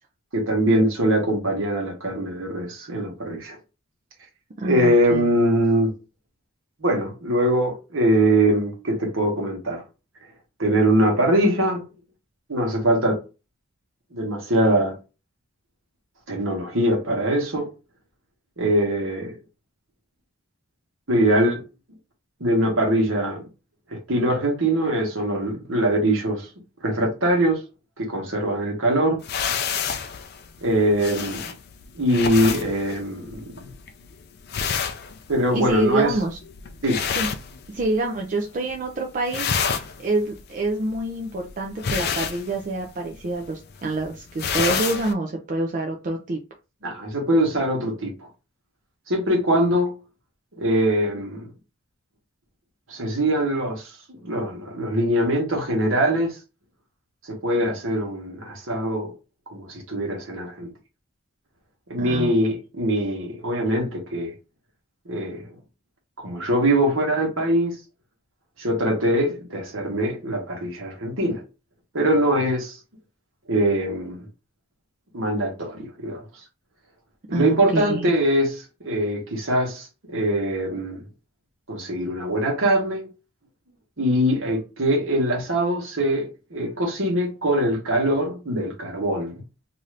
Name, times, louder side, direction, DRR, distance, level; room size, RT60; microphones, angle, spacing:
voice 1, 0.3-3.6 4.6-5.9 6.8-9.8 10.6-11.8 12.5-13.2 14.1-15.0 16.3-17.7 18.6-19.3 21.1-21.6 22.4-23.4 23.9-26.5 26.8-27.6 28.0-29.2 30.6-31.5 31.9-33.7 35.3-36.2 36.8-37.0 46.8-48.3 49.1-49.9 50.6-51.5 52.9-56.4 57.2-59.1 59.5-60.7 61.9-64.3 65.1-65.5 66.2-67.8 68.6-71.4 71.9-72.8 73.5-74.3 75.1-76.2 77.3-81.0 81.7-83.0 84.0-89.4, right 1 dB, 65° right, 1.1 m, -22 dB
voice 2, 4.6-5.3 35.5-36.4 37.2-37.3 37.7-39.5 40.0-46.4 62.0-62.3 77.3-78.1, right 2 dB, 35° right, 0.4 m, -26 dB
sound 1, 29.2-38.2 38.5-38.9 39.2-45.1, left 6 dB, 50° left, 0.4 m, -29 dB
2.7 x 2.5 x 3.2 m
head